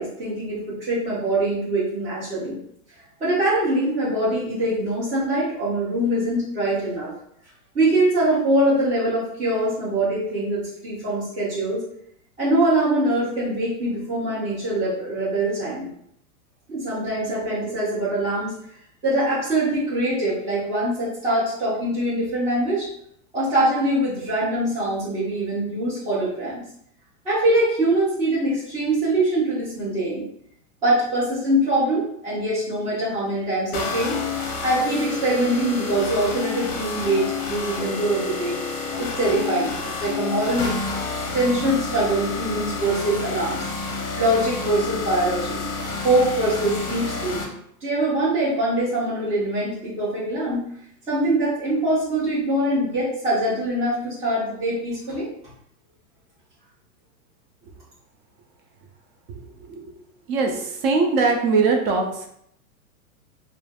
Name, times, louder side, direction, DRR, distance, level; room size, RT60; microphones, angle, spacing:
voice 1, 0.0-2.6 3.2-7.1 7.7-11.8 12.4-15.9 16.7-18.5 19.0-22.9 23.3-26.6 27.2-30.3 30.8-34.2 34.6-38.6 39.0-40.8 41.3-43.6 44.2-45.6 46.0-47.4 47.8-50.6 51.1-55.3, right 1 dB, 15° right, -11 dB, 0.8 m, -23 dB
sound 1, 33.7-47.4, left 4 dB, 40° left, 0.7 m, -29 dB
voice 2, 59.6-59.9 60.3-62.3, right 4 dB, 40° right, 2 dB, 0.5 m, -21 dB
3.2 x 2.0 x 2.3 m, 0.72 s
hypercardioid pair, 140°, 45 cm